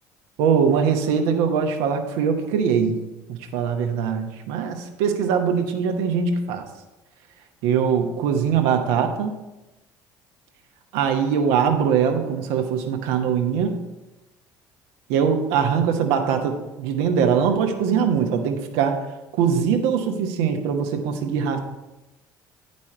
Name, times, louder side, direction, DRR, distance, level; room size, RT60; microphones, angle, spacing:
voice 1, 0.4-3.0 3.3-6.6 7.6-9.3 10.9-13.8 15.1-19.0 19.4-21.6, right 7 dB, 75° right, 5 dB, 1.0 m, -22 dB
9.6 x 5.4 x 4.5 m, 1.0 s
hypercardioid pair, 65°, 10 cm